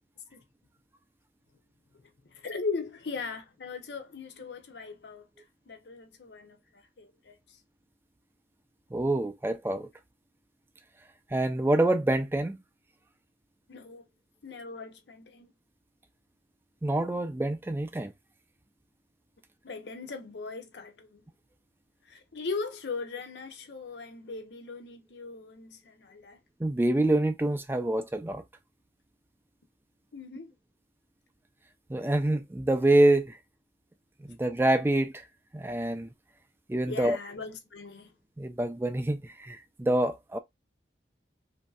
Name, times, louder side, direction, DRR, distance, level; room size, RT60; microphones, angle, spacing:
voice 1, 2.2-5.3 5.7-6.6 7.0-7.4 13.7-14.1 14.4-15.5 19.6-21.2 22.1-26.4 30.1-30.5 36.9-38.1, left 4 dB, 70° left, 0.7 m, -39 dB
voice 2, 8.9-9.9 11.3-12.6 16.8-18.1 26.6-28.4 31.9-33.4 34.3-35.2 35.5-36.1 36.7-37.2 38.4-40.4, right 1 dB, 10° right, 0.3 m, -26 dB
3.0 x 2.6 x 2.3 m
head